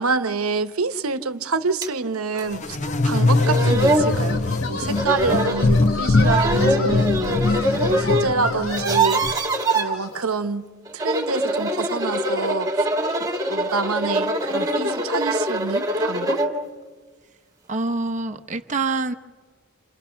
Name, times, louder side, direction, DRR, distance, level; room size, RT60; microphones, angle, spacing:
voice 1, 0.0-4.4 4.7-9.5 9.7-10.7 10.9-12.9 13.2-16.4, right 4 dB, 85° right, 11 dB, 1.0 m, -27 dB
sound 1, 1.8-1.9 2.4-2.5 3.1-3.2 3.4-4.1 5.0-5.7 6.2-8.3 8.6-9.9 10.9-16.6, right 1 dB, 15° right, 1.9 m, -23 dB
sound 2, 2.3-10.4, left 3 dB, 65° left, 3.4 m, -33 dB
sound 3, 2.5-9.3, left 2 dB, 35° left, 0.8 m, -22 dB
voice 2, 17.7-19.1, right 3 dB, 35° right, 7 dB, 0.9 m, -25 dB
29.0 x 28.0 x 5.8 m, 1.4 s
head